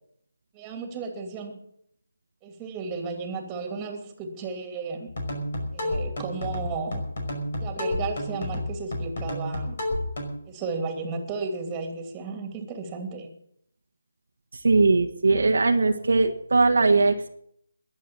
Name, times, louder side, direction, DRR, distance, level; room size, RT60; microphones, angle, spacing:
voice 1, 0.5-1.6 2.4-5.1 5.7-7.0 7.6-9.8 10.4-13.3, right 4 dB, 15° right, 4 dB, 2.8 m, -34 dB
sound 1, 5.1-10.4, left 1 dB, 50° left, 5.5 m, -31 dB
voice 2, 14.5-17.3, right 3 dB, 60° right, 4 dB, 1.4 m, -20 dB
21.0 x 8.3 x 7.6 m, 0.72 s
figure-of-eight pair, 150°, 0 cm